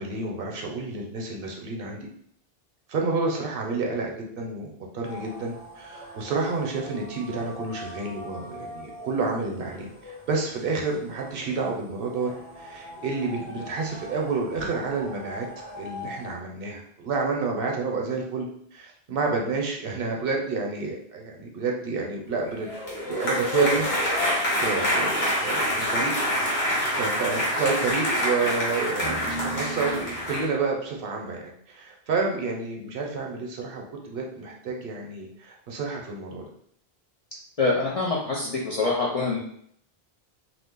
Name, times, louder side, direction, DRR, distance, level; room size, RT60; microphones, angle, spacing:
voice 1, 0.0-2.1 2.9-12.3 12.6-15.5 15.8-22.7 23.0-23.9 24.2-26.1 26.7-36.4, right 4 dB, 65° right, 0 dB, 0.8 m, -29 dB
sound 1, 5.0-16.3, equal, 30° left, 1.0 m, -42 dB
sound 2, 22.6-30.5, equal, 80° left, 1.2 m, -26 dB
voice 2, 37.6-39.4, left 3 dB, 50° left, -4 dB, 0.5 m, -25 dB
2.5 x 2.0 x 3.6 m, 0.66 s
omnidirectional pair, 1.1 m